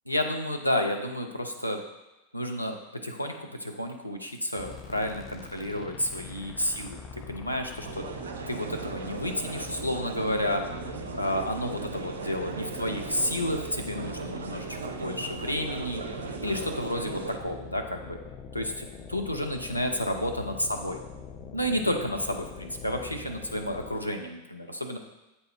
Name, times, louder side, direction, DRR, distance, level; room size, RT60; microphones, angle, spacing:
voice 1, 0.1-1.8 2.3-2.8 3.0-8.0 8.5-10.6 11.1-18.2 18.5-21.0 21.5-25.0, equal, 90° left, 3 dB, 0.5 m, -31 dB
sound 1, 4.6-24.2, left 6 dB, 30° left, 0.5 m, -44 dB
sound 2, 7.8-17.4, right 6 dB, 65° right, 0.5 m, -38 dB
7.8 x 4.2 x 3.5 m, 0.98 s
figure-of-eight pair, 90°, 0 cm